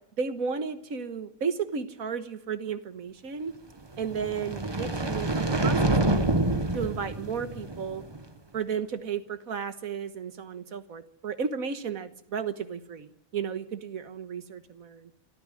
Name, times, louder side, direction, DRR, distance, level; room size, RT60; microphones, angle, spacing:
voice 1, 0.2-3.5 4.0-6.3 6.7-8.0 8.5-15.1, right 6 dB, 85° right, 11 dB, 1.8 m, -33 dB
sound 1, 3.9-8.2, right 2 dB, 20° right, 1.2 m, -27 dB
26.0 x 14.0 x 9.8 m, 0.77 s
omnidirectional pair, 1.4 m